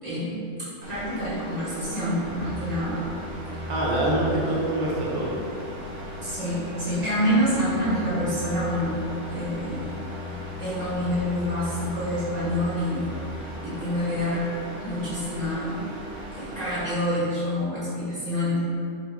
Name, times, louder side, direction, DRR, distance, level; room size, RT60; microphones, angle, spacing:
voice 1, 0.0-3.1 6.2-9.0 9.3-9.9 10.6-13.1 13.6-14.5 14.8-15.8 16.3-18.6, equal, 35° right, -11 dB, 1.2 m, -27 dB
sound 1, 0.8-16.8, right 1 dB, 85° right, 1.1 m, -38 dB
sound 2, 2.1-13.7 14.1-14.2, left 3 dB, 10° right, 1.1 m, -39 dB
voice 2, 3.7-5.4, right 1 dB, 70° right, -6 dB, 0.4 m, -25 dB
3.0 x 2.0 x 3.4 m, 2.3 s
omnidirectional pair, 1.3 m